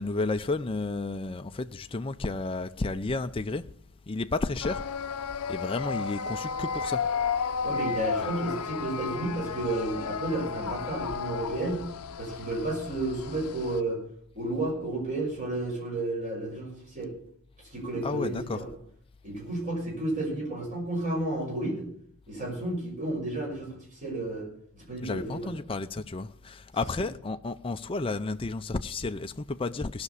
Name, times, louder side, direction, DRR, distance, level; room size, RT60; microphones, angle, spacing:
voice 1, 0.0-3.6 4.1-4.8 5.5-7.0 8.2-8.3 18.0-18.6 25.0-30.0, left 3 dB, 25° left, 0.5 m, -32 dB
sound 1, 4.6-13.8, left 6 dB, 90° left, 0.6 m, -33 dB
voice 2, 7.6-11.8 12.2-14.0 14.3-17.1 17.7-18.7 19.2-21.9 22.3-24.5 24.7-25.5 27.0-27.1, right 2 dB, 35° right, 6.1 m, -32 dB
18.0 x 6.0 x 8.2 m
head